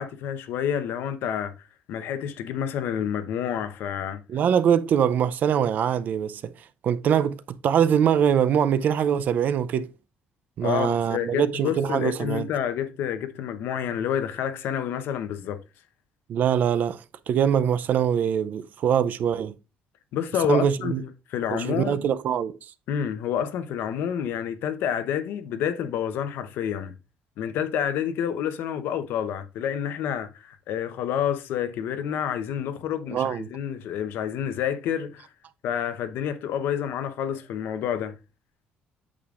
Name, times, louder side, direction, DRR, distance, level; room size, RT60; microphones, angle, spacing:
voice 1, 0.0-1.5 1.9-4.2 10.6-15.6 20.1-22.0 22.9-26.9 27.4-35.2 35.6-38.1, left 9 dB, 75° left, 0.9 m, -29 dB
voice 2, 4.3-6.5 6.8-9.9 10.6-12.5 16.3-17.0 17.3-19.5 20.5-21.0 21.5-22.6 33.1-33.5, right 8 dB, 50° right, 0.5 m, -23 dB
8.5 x 6.5 x 2.5 m
cardioid pair, 150°, 4 cm